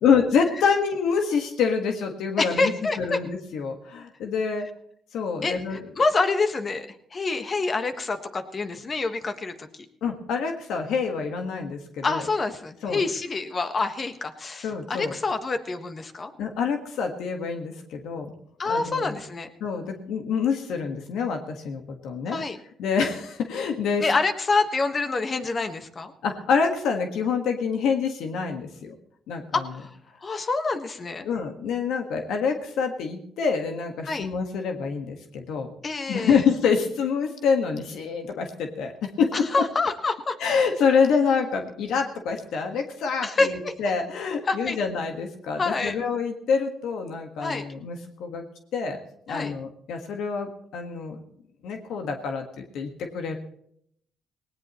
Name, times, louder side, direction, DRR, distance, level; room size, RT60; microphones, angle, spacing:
voice 1, 0.0-2.7 3.0-4.7 5.1-5.8 10.0-12.2 12.8-13.0 14.6-15.1 16.4-18.3 18.6-19.2 19.6-22.4 22.8-24.0 26.2-28.9 29.3-29.6 31.2-35.7 36.1-39.3 40.4-48.5 48.7-49.0 49.3-51.2 51.6-52.4 52.7-53.4, left 6 dB, 80° left, 4 dB, 1.6 m, -26 dB
voice 2, 2.4-3.2 5.4-9.7 12.0-16.3 18.6-19.5 22.3-22.6 24.0-26.1 29.5-29.9 30.2-31.3 34.0-34.3 35.8-36.4 39.3-40.4 43.2-43.7 44.4-44.8 45.6-45.9 47.4-47.7 49.3-49.5, left 3 dB, 40° left, 8 dB, 1.5 m, -27 dB
18.5 x 18.0 x 3.1 m, 0.70 s
cardioid pair, 90°, 0 cm